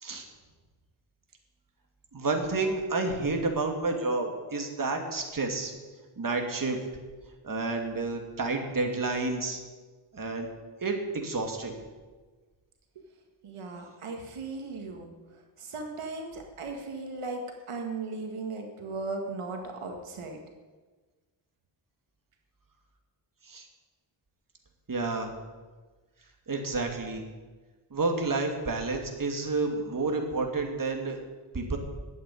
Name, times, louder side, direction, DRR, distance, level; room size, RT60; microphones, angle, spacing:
voice 1, 2.1-5.7 6.2-6.8 7.4-9.6 10.1-10.5 10.8-11.8 23.4-23.6 24.9-25.3 26.5-27.2 27.9-31.2 31.5-31.8, right 3 dB, 40° right, 3 dB, 2.4 m, -30 dB
voice 2, 13.4-15.1 15.6-17.4 17.7-20.4, right 3 dB, 85° right, 3 dB, 2.0 m, -37 dB
12.0 x 8.9 x 9.8 m, 1.3 s
wide cardioid pair, 90°, 49 cm